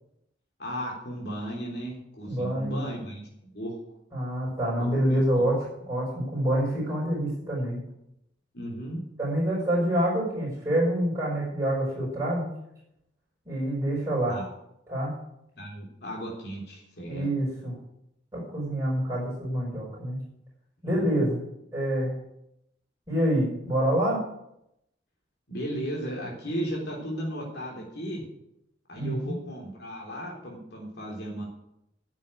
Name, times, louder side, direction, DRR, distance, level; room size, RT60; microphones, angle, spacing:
voice 1, 0.6-3.7 4.8-5.4 8.5-9.0 14.3-14.5 15.6-17.3 20.9-21.2 25.5-28.2 28.9-31.5, equal, 65° left, -2 dB, 3.4 m, -35 dB
voice 2, 2.3-2.8 4.1-7.8 9.2-12.5 13.4-14.4 14.9-15.1 17.1-17.7 18.3-20.2 20.8-21.4 21.7-22.1 23.1-24.2 29.0-29.3, right 1 dB, 15° right, -6 dB, 6.3 m, -27 dB
10.5 x 7.4 x 9.5 m, 0.81 s
head